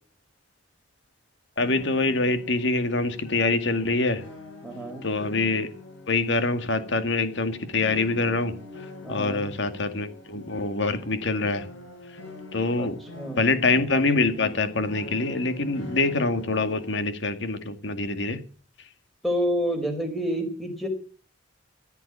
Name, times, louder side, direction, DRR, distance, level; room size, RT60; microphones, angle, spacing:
sound 1, 1.6-17.0, left 2 dB, 90° left, 6.6 m, -44 dB
voice 1, 1.6-4.2 5.0-5.7 6.1-8.6 9.1-11.7 12.5-13.0 13.4-18.4, left 3 dB, 65° left, 1.9 m, -25 dB
voice 2, 4.6-5.1 9.0-9.5 12.7-12.9 13.1-13.5 19.2-20.9, equal, ahead, 4.1 m, -28 dB
15.0 x 8.3 x 8.4 m
head